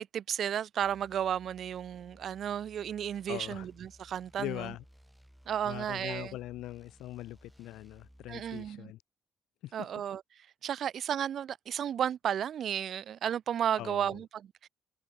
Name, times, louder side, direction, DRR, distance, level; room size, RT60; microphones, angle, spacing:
voice 1, 0.0-4.7 5.5-6.4 8.3-8.9 9.7-10.2 10.6-14.7, right 9 dB, 65° right, 0.3 m, -33 dB
sound 1, 0.8-8.7, equal, ahead, 1.2 m, -59 dB
voice 2, 3.3-3.7 4.4-4.8 5.6-9.0 9.6-9.9 13.8-14.2, left 15 dB, 90° left, 0.4 m, -41 dB
cardioid pair, 90°, 0 cm